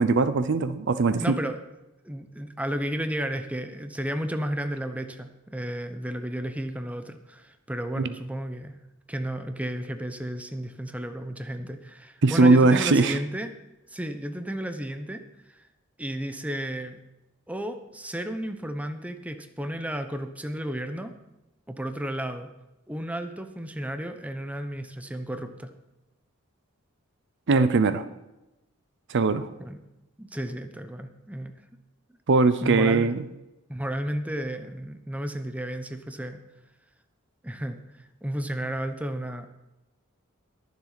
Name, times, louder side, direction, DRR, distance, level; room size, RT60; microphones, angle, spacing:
voice 1, 0.0-1.4 12.2-13.2 27.5-28.0 29.1-29.5 32.3-33.2, right 3 dB, 60° right, 13 dB, 0.6 m, -20 dB
voice 2, 1.2-1.6 2.0-8.7 9.1-13.6 13.9-15.7 16.0-17.0 17.5-21.1 21.7-22.5 22.9-25.7 29.6-29.8 30.2-31.5 32.6-33.1 33.7-36.4 37.4-39.5, right 1 dB, 5° right, 8 dB, 0.8 m, -33 dB
21.0 x 7.3 x 4.0 m, 0.96 s
head